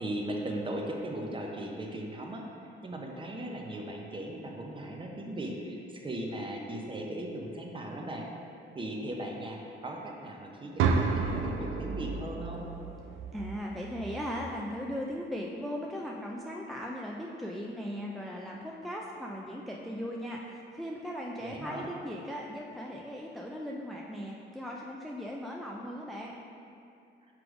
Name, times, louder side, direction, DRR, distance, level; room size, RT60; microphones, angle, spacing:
voice 1, 0.0-2.6 2.8-8.3 8.7-12.6 21.4-21.9, right 1 dB, 25° right, 0 dB, 0.8 m, -38 dB
sound 1, 10.8-14.8, right 5 dB, 90° right, 0.5 m, -32 dB
voice 2, 13.3-26.3, equal, ahead, -2 dB, 0.4 m, -38 dB
6.0 x 3.3 x 4.8 m, 2.6 s
cardioid pair, 90°, 20 cm